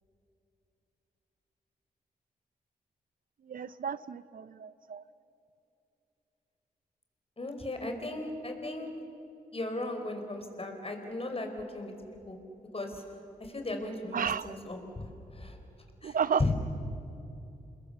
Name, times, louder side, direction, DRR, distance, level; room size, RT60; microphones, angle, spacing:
voice 1, 3.5-5.0 14.1-14.5 16.0-16.4, right 7 dB, 60° right, 17 dB, 0.6 m, -32 dB
voice 2, 7.4-8.9 9.5-11.5 11.7-11.9 12.3-12.4 12.7-13.0 13.4-15.6 16.0-16.5, left 2 dB, 35° left, 5 dB, 4.9 m, -36 dB
28.5 x 21.0 x 7.2 m, 2.8 s
supercardioid pair, 40°, 16 cm